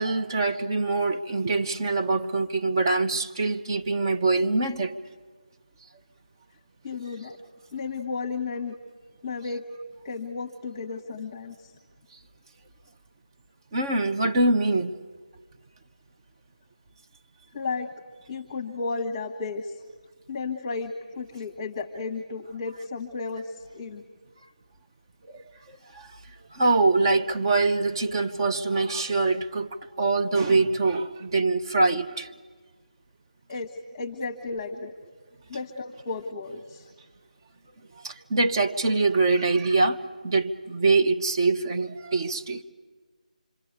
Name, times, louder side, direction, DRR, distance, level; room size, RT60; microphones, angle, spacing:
voice 1, 0.0-5.0 13.7-14.9 25.3-26.2 26.5-32.3 38.0-42.6, right 3 dB, 30° right, 1.2 m, -24 dB
voice 2, 6.8-7.4 7.7-8.7 9.2-9.7 10.0-11.8 17.5-17.9 18.3-19.8 20.3-24.0 33.5-34.9 35.5-36.9, left 4 dB, 20° left, 1.5 m, -33 dB
26.5 x 24.5 x 8.2 m
figure-of-eight pair, 160°, 4 cm